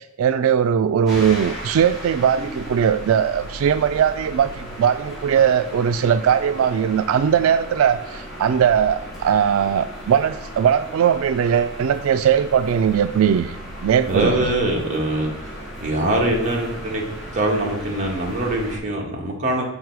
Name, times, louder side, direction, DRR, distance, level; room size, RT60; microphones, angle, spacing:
voice 1, 0.0-14.4, right 8 dB, 90° right, 11 dB, 0.3 m, -19 dB
sound 1, 1.0-18.8, equal, ahead, 3.1 m, -36 dB
voice 2, 14.1-15.5 15.8-17.0 17.3-19.6, right 1 dB, 35° right, -1 dB, 1.7 m, -23 dB
6.4 x 5.5 x 4.7 m, 0.87 s
head